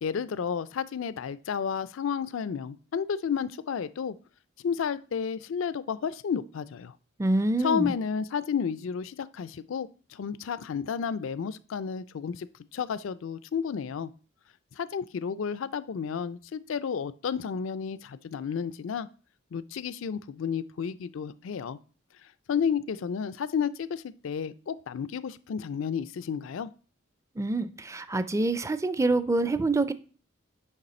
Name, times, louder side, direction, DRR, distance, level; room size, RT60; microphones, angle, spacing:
voice 1, 0.0-4.2 4.6-6.9 7.6-14.1 14.8-19.1 19.5-21.8 22.5-26.7, left 7 dB, 70° left, 15 dB, 0.4 m, -31 dB
voice 2, 7.2-7.9 27.4-29.9, right 2 dB, 15° right, 13 dB, 0.4 m, -26 dB
6.6 x 5.4 x 4.2 m, 0.38 s
head